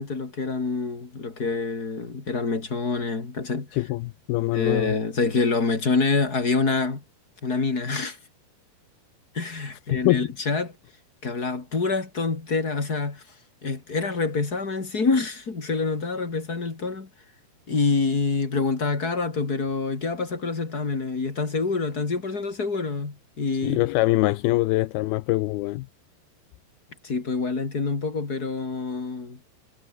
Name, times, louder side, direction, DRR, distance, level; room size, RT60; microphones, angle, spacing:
voice 1, 0.0-3.8 4.5-7.0 7.4-8.2 9.3-10.7 11.2-13.2 13.6-17.1 17.7-23.8 27.0-29.4, left 4 dB, 25° left, 3.1 m, -26 dB
voice 2, 3.7-4.9 9.9-10.3 23.6-25.9, left 19 dB, 80° left, 2.5 m, -23 dB
omnidirectional pair, 4.7 m